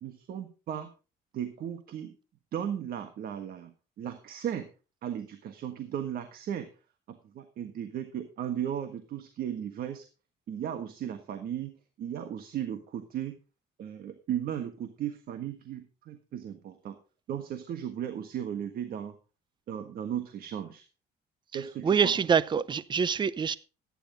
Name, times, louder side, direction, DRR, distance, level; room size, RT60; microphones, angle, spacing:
voice 1, 0.0-0.9 1.3-2.1 2.5-4.7 5.0-6.7 7.1-10.0 10.5-13.4 13.8-17.0 17.3-19.2 19.7-20.8 21.5-22.1, right 9 dB, 60° right, 1.5 m, -36 dB
voice 2, 21.5-23.6, right 6 dB, 25° right, 0.6 m, -26 dB
13.5 x 10.0 x 3.9 m
cardioid pair, 110°, 17 cm